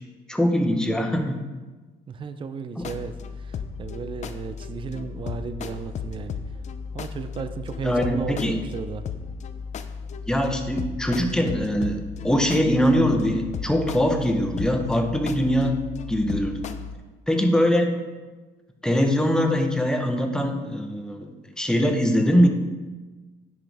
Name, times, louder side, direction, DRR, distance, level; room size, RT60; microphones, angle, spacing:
voice 1, 0.3-1.4 2.8-2.9 7.8-8.6 10.3-15.8 16.1-16.6 17.3-18.0 18.8-22.5, equal, 5° left, 4 dB, 0.9 m, -22 dB
voice 2, 2.1-6.4 6.9-9.1, right 5 dB, 30° right, 10 dB, 0.5 m, -34 dB
sound 1, 2.8-17.0, left 6 dB, 45° left, 0.5 m, -35 dB
9.9 x 6.3 x 3.5 m, 1.3 s
cardioid pair, 110°, 17 cm